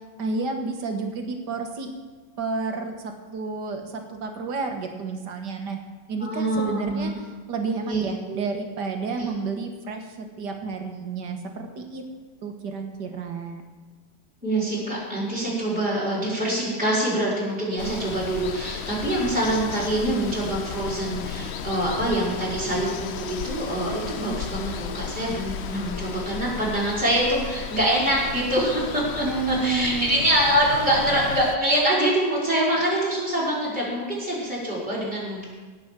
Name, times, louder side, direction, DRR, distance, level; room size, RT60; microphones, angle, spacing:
voice 1, 0.2-1.9 2.4-5.8 6.1-7.1 7.5-12.0 12.4-13.6 29.2-30.2, right 4 dB, 70° right, 4 dB, 2.0 m, -30 dB
voice 2, 6.2-7.1 7.9-8.4 9.2-9.3 14.4-35.4, right 1 dB, 5° right, -7 dB, 4.0 m, -25 dB
Water, 17.8-31.6, left 8 dB, 80° left, 0.6 m, -34 dB
17.5 x 6.1 x 7.4 m, 1.4 s
omnidirectional pair, 1.9 m